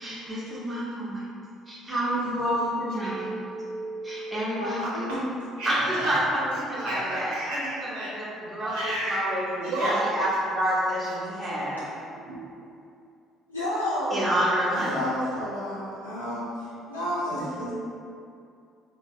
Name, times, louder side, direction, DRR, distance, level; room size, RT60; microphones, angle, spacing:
voice 1, 0.0-1.2 1.7-3.3 4.0-5.2 5.6-11.8 14.1-15.0 17.3-17.4, equal, 15° right, -8 dB, 0.9 m, -29 dB
voice 2, 3.0-4.4 5.6-6.1 6.8-8.1 8.6-9.3 9.6-10.0 12.3-12.4 17.6-17.7, right 1 dB, 65° right, -8 dB, 0.5 m, -32 dB
voice 3, 4.6-5.1 11.3-11.5 13.5-14.2 14.8-17.7, left 1 dB, 90° left, -11 dB, 0.4 m, -31 dB
3.7 x 2.1 x 2.7 m, 2.5 s
figure-of-eight pair, 50°, 0 cm